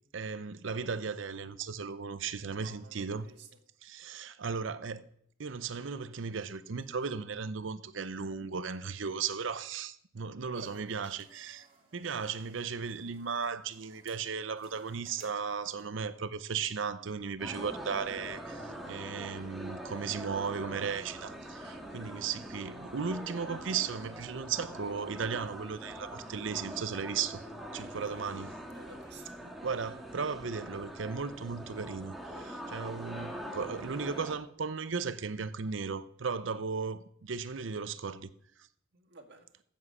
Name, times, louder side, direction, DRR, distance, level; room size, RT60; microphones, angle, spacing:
voice 1, 0.1-3.3 3.8-5.1 5.4-11.7 11.9-27.4 27.7-28.5 29.6-38.3, right 5 dB, 75° right, 0.7 m, -36 dB
voice 2, 2.2-3.5 10.5-11.1 27.9-28.2 28.6-29.3 38.9-39.5, right 3 dB, 60° right, 1.7 m, -53 dB
sound 1, 10.6-16.0, right 3 dB, 30° right, 2.7 m, -62 dB
sound 2, 17.4-34.3, right 1 dB, ahead, 1.7 m, -44 dB
14.5 x 7.5 x 5.5 m
head